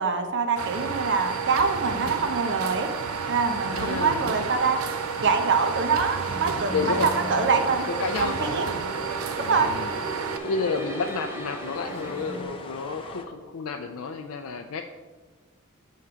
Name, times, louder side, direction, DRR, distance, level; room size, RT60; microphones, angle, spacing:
voice 1, 0.0-2.9 3.3-4.8 5.2-6.9 7.3-7.9 8.2-8.7 9.4-9.7, right 4 dB, 55° right, 6 dB, 0.7 m, -25 dB
sound 1, 0.6-10.4, right 7 dB, 85° right, 0.4 m, -31 dB
sound 2, 0.7-13.3, left 3 dB, 25° left, 0.6 m, -41 dB
voice 2, 3.6-4.3 6.7-7.1 7.6-8.4 9.3-14.8, left 4 dB, 85° left, 3 dB, 0.4 m, -31 dB
sound 3, 6.2-12.4, equal, 15° right, 0.7 m, -37 dB
7.2 x 3.7 x 5.6 m, 1.3 s
head